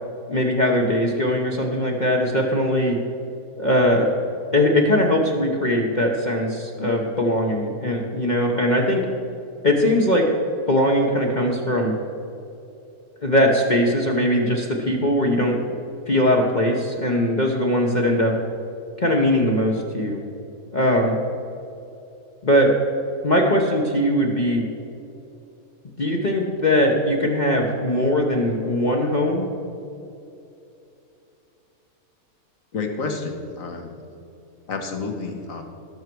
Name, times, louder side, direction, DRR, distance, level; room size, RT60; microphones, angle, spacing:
voice 1, 0.3-3.0 3.6-4.0 4.5-9.0 9.6-10.2 10.7-11.9 13.2-15.6 16.1-18.3 19.0-20.2 20.7-21.2 22.4-22.7 23.2-24.6 26.0-29.5, left 1 dB, 35° left, -1 dB, 1.0 m, -20 dB
voice 2, 32.7-34.0 34.7-35.6, left 4 dB, 60° left, 4 dB, 1.7 m, -30 dB
18.0 x 6.5 x 4.7 m, 2.7 s
omnidirectional pair, 1.6 m